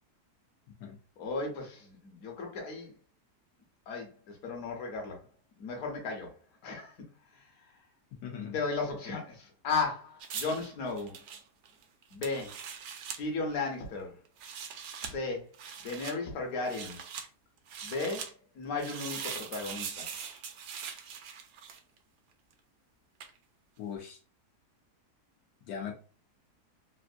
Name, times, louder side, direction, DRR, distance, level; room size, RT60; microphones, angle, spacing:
voice 1, 1.2-2.9 3.9-5.2 5.6-6.3 6.6-6.9 8.5-11.2 12.1-12.6 13.2-14.2 15.0-15.5 15.8-17.0 17.8-18.3 18.5-20.1, left 3 dB, 65° left, 1.3 m, -35 dB
voice 2, 8.1-8.5 23.8-24.2 25.6-25.9, left 7 dB, 90° left, 1.3 m, -39 dB
sound 1, 10.2-13.2 14.2-15.1 15.5-16.2 16.6-17.3 17.7-18.3 18.8-22.0 23.2-23.4, right 7 dB, 75° right, 1.1 m, -41 dB
3.5 x 2.5 x 2.5 m
omnidirectional pair, 1.7 m